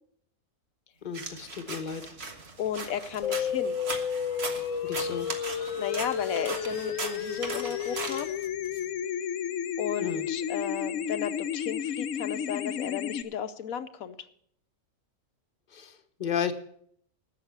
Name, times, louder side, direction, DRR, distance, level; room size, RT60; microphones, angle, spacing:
voice 1, 1.0-2.1 4.8-5.3 10.0-10.3 15.7-16.5, left 7 dB, 35° left, 7 dB, 1.2 m, -33 dB
sound 1, 1.1-8.8, right 3 dB, 50° right, 1.7 m, -39 dB
voice 2, 2.6-3.8 5.5-8.3 9.8-14.2, left 9 dB, 90° left, 10 dB, 1.2 m, -34 dB
sound 2, 3.2-13.2, left 8 dB, 70° left, 1.1 m, -32 dB
12.5 x 8.2 x 8.1 m, 0.67 s
omnidirectional pair, 1.4 m